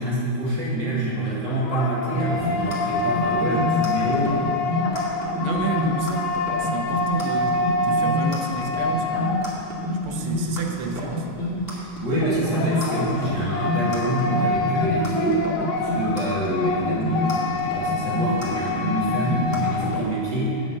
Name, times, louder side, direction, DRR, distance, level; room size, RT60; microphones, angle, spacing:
voice 1, 0.0-4.4 12.0-15.4 15.7-20.6, right 1 dB, 55° right, -7 dB, 3.2 m, -26 dB
sound 1, 1.2-9.9 12.2-20.0, left 3 dB, 75° left, 1.8 m, -27 dB
sound 2, 2.1-20.0, left 1 dB, 10° left, 2.4 m, -28 dB
voice 2, 5.4-9.4 10.0-11.3, right 4 dB, 85° right, 4 dB, 1.9 m, -31 dB
9.2 x 7.3 x 7.6 m, 2.5 s
omnidirectional pair, 2.3 m